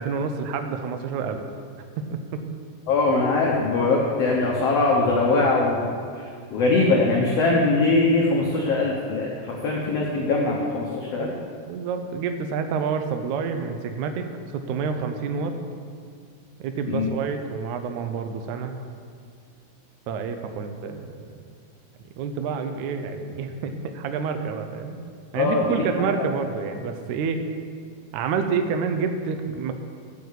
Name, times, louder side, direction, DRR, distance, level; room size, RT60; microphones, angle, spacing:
voice 1, 0.0-1.4 2.0-2.4 11.2-11.4 11.7-15.5 16.6-18.7 20.1-21.3 22.2-25.0 25.3-27.4 28.1-29.7, right 5 dB, 80° right, 7 dB, 1.7 m, -28 dB
voice 2, 2.9-5.8 6.5-11.3 16.9-17.1 25.3-25.8 26.1-26.2, left 3 dB, 80° left, -3 dB, 1.4 m, -21 dB
8.4 x 6.8 x 8.3 m, 2.1 s
omnidirectional pair, 4.4 m